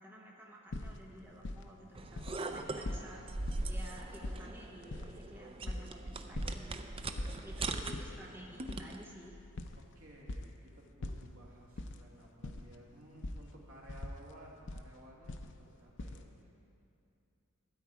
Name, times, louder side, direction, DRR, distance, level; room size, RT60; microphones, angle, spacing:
voice 1, 0.0-3.2 3.7-6.8 7.4-9.4, equal, 10° right, -2 dB, 1.1 m, -52 dB
sound 1, 0.7-1.8 2.1-2.4 2.6-3.1 3.5-3.7 4.1-5.9 6.3-6.6 6.9-7.4 7.8-8.1 8.6-10.5 11.0-12.0 12.2-12.7 13.2-13.4 13.9-14.8 15.2-16.2, left 2 dB, 60° left, 0.6 m, -42 dB
sound 2, 1.9-9.1, right 2 dB, 25° right, 0.5 m, -41 dB
voice 2, 7.0-8.0 9.8-16.7, right 1 dB, 80° right, -3 dB, 2.1 m, -57 dB
13.0 x 8.3 x 4.9 m, 2.7 s
head